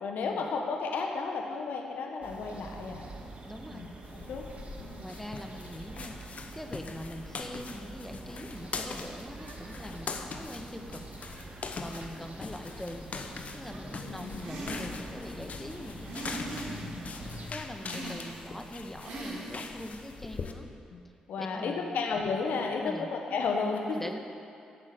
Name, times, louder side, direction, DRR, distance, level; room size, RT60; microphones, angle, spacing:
voice 1, 0.0-3.0 3.7-3.9 4.2-4.4 4.8-5.1 14.0-14.4 17.8-18.2 20.9-21.0 21.3-24.0, left 4 dB, 75° left, 2 dB, 1.3 m, -33 dB
sound 1, 2.2-17.5, right 3 dB, 50° right, 1.9 m, -46 dB
voice 2, 3.5-3.8 5.0-6.2 6.5-11.0 11.8-13.1 13.5-17.3 17.5-20.7 21.4-22.0 22.8-23.1 23.9-24.2, left 1 dB, 10° left, 4 dB, 1.6 m, -43 dB
sound 2, 4.0-20.5, left 4 dB, 55° left, 1.2 m, -42 dB
sound 3, 14.4-15.1 16.0-17.1 17.8-18.5 19.0-19.8, right 2 dB, 80° right, 3.4 m, -40 dB
14.0 x 7.4 x 8.1 m, 2.5 s
supercardioid pair, 50°, 3 cm